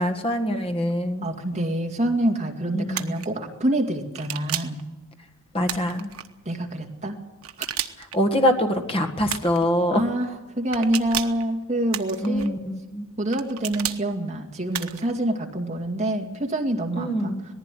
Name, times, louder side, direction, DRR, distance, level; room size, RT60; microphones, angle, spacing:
voice 1, 0.0-1.3 2.7-3.2 5.5-6.1 8.1-10.0 12.2-13.1 16.9-17.4, equal, 25° left, 5 dB, 1.7 m, -24 dB
voice 2, 1.2-4.8 6.5-7.2 9.9-10.3 10.6-12.6 13.2-17.3, right 1 dB, 30° right, 2 dB, 2.2 m, -26 dB
sound 1, 2.9-3.3 4.1-4.8 5.6-6.3 7.4-8.2 9.3-9.7 10.7-11.4 11.9-12.5 13.3-14.0 14.7-15.1, right 11 dB, 75° right, 1.1 m, -32 dB
19.0 x 15.0 x 9.2 m, 1.1 s
head